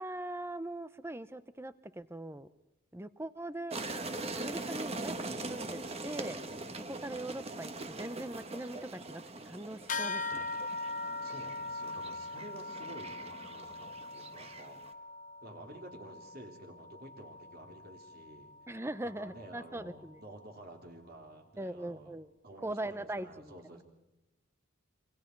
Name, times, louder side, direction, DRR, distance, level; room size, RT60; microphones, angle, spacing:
voice 1, 0.0-2.5 2.9-3.8 4.4-6.4 6.9-10.4 18.7-20.2 21.6-22.3 22.6-23.5, right 1 dB, 10° right, 13 dB, 0.8 m, -41 dB
sound 1, 3.7-14.9, right 2 dB, 30° right, 1.5 m, -42 dB
sound 2, 9.9-19.7, left 3 dB, 40° left, 0.9 m, -41 dB
voice 2, 11.2-14.8 15.4-18.5 19.0-22.2 22.4-23.8, right 1 dB, 45° right, 2 dB, 3.6 m, -51 dB
27.0 x 25.5 x 4.7 m, 0.97 s
head